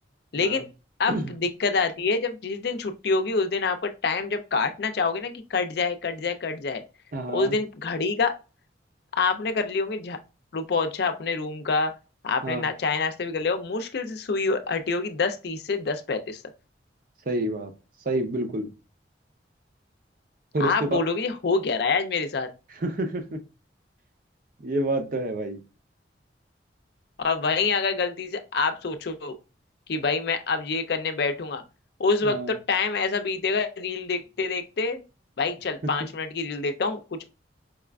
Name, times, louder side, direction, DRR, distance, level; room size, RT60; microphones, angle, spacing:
voice 1, 0.3-0.7 1.0-6.8 7.3-8.4 9.1-10.2 10.5-11.9 12.2-16.4 20.6-22.5 27.2-29.3 29.9-31.6 32.0-35.0 35.4-37.2, left 4 dB, 60° left, 0.5 m, -26 dB
voice 2, 7.1-7.6 12.4-12.7 17.3-17.7 18.0-18.7 20.5-20.9 22.8-23.4 24.6-25.6 32.2-32.6 35.8-35.9, right 1 dB, 50° right, 0.6 m, -28 dB
4.7 x 2.4 x 2.2 m
head